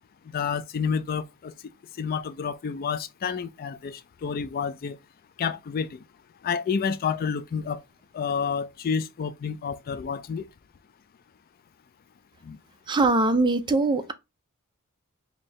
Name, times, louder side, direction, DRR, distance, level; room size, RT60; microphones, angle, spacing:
voice 1, 0.3-1.5 2.0-5.0 5.4-6.0 6.4-7.8 8.1-10.5 12.4-12.6, left 6 dB, 40° left, 0.3 m, -29 dB
voice 2, 12.9-14.1, right 2 dB, 20° right, 0.4 m, -22 dB
4.5 x 2.7 x 3.0 m
head